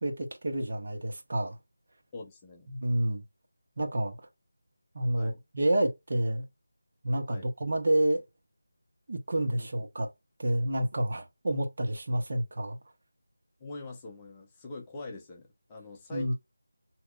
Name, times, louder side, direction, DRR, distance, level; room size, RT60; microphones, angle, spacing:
voice 1, 0.0-1.6 2.7-3.2 3.8-4.2 4.9-6.4 7.0-8.2 9.1-10.1 10.4-12.8 16.1-16.3, right 1 dB, 45° right, 0.9 m, -29 dB
voice 2, 2.1-2.7 5.1-5.4 7.3-7.5 9.6-9.7 13.6-16.3, left 3 dB, 15° left, 0.7 m, -43 dB
5.0 x 2.9 x 2.2 m
figure-of-eight pair, 170°, 0 cm